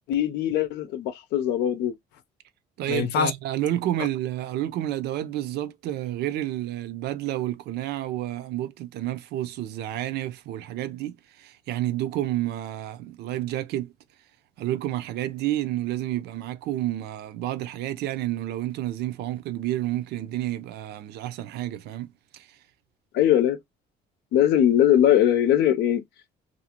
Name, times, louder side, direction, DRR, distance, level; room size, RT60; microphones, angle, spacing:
voice 1, 0.1-2.0 2.9-3.3 23.1-23.6 24.3-26.0, left 11 dB, 80° left, 0.6 m, -21 dB
voice 2, 2.8-13.9 14.6-22.6, right 13 dB, 75° right, 0.5 m, -30 dB
2.6 x 2.5 x 2.8 m
cardioid pair, 110°, 17 cm